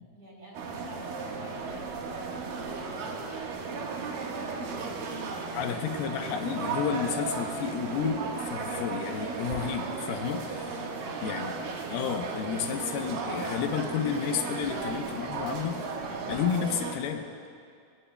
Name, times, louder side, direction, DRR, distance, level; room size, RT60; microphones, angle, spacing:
voice 1, 0.1-3.3 3.6-5.2 5.6-6.6 11.3-11.6, right 1 dB, 25° right, -4 dB, 3.8 m, -47 dB
sound 1, 0.5-17.0, right 4 dB, 65° right, 3.1 m, -35 dB
sound 2, 0.7-17.1, equal, 20° left, 2.3 m, -52 dB
voice 2, 5.5-10.9 11.2-11.5 11.9-15.8 16.3-17.3, left 7 dB, 80° left, 5 dB, 2.7 m, -31 dB
26.0 x 24.0 x 2.2 m, 2.3 s
omnidirectional pair, 4.4 m